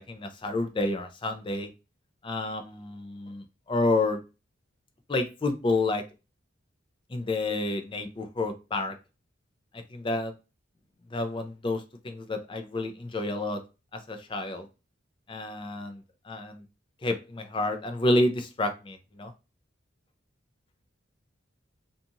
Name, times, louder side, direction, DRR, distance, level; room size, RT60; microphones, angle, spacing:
voice 1, 0.0-1.7 2.2-4.2 5.1-6.0 7.1-8.9 9.9-10.3 11.1-13.6 13.9-14.7 15.3-16.0 16.3-16.6 17.0-19.3, left 2 dB, 25° left, 7 dB, 0.4 m, -29 dB
2.6 x 2.4 x 2.7 m, 0.28 s
head